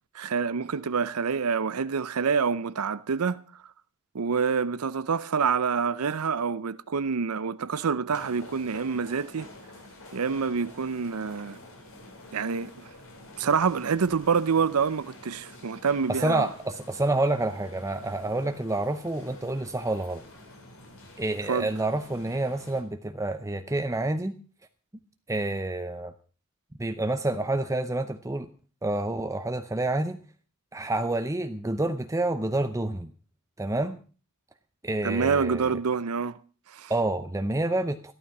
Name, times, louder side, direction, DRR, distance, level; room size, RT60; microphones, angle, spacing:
voice 1, 0.1-3.4 4.1-9.5 10.1-11.6 12.3-12.7 13.4-16.5 21.5-21.7 35.0-36.4 36.7-36.9, right 5 dB, 90° right, 0.6 m, -27 dB
sound 1, 8.1-22.8, left 1 dB, 65° left, 4.2 m, -48 dB
voice 2, 16.1-20.2 21.2-24.3 25.3-26.1 26.8-28.5 28.8-30.2 30.7-33.1 33.6-34.0 34.8-35.7 36.9-38.1, right 2 dB, 15° right, 0.7 m, -28 dB
14.5 x 12.5 x 6.0 m
head